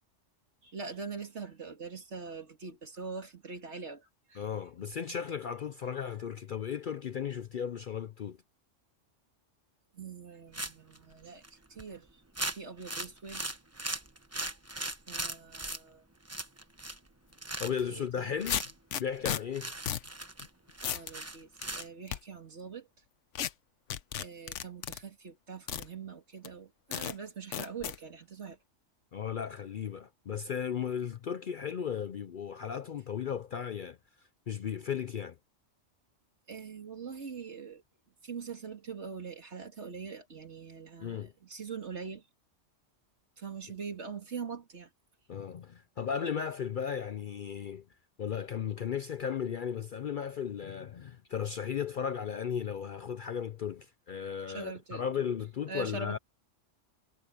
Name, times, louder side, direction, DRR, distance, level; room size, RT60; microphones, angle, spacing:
voice 1, 0.6-4.4 9.9-12.1 12.5-13.4 15.1-16.0 17.9-18.4 20.8-22.9 24.2-28.6 36.5-37.8 38.2-42.2 43.4-44.9 54.5-55.0 55.7-56.2, right 5 dB, 60° right, 2.5 m, -43 dB
voice 2, 4.3-8.4 17.6-18.6 19.0-19.7 29.1-34.0 34.5-35.4 41.0-41.3 45.3-47.8 48.2-56.2, left 8 dB, 55° left, 0.6 m, -35 dB
sound 1, 10.5-11.0 11.4-11.5 11.8-11.9 12.4-15.8 16.3-17.1 17.3-17.9 18.4-18.7 19.2-19.3 19.5-21.9, right 2 dB, 15° right, 1.0 m, -38 dB
sound 2, 17.7-17.8 18.5-19.4 19.9-20.1 20.4-20.5 20.8-21.1 21.6-22.2 23.4-23.5 23.9-25.0 25.7-25.9 26.4-26.5 26.9-27.1 27.5-28.0, left 9 dB, 70° left, 1.1 m, -34 dB
omnidirectional pair, 1.3 m